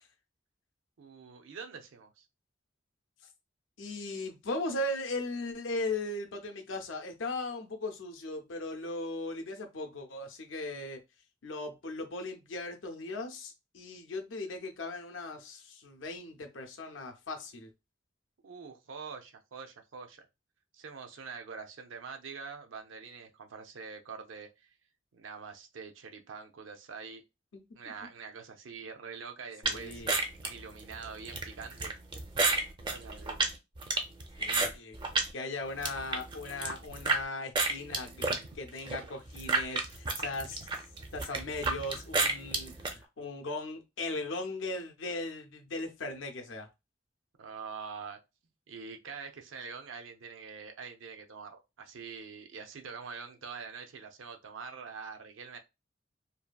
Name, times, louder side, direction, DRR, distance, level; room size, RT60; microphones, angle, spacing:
voice 1, 1.0-2.2 18.4-20.3 20.7-24.7 25.1-27.2 27.8-30.0 30.4-31.9 32.9-33.4 47.4-48.2 48.7-55.6, right 5 dB, 85° right, 0.5 m, -45 dB
voice 2, 3.8-11.0 11.4-17.7 27.5-27.6 29.6-30.2 34.4-35.0 35.3-38.3 38.5-40.7 41.1-46.7, left 2 dB, 80° left, 0.6 m, -38 dB
sound 1, 29.6-35.3 35.7-37.2 37.5-42.9, right 3 dB, 25° right, 0.4 m, -31 dB
2.6 x 2.5 x 2.2 m
head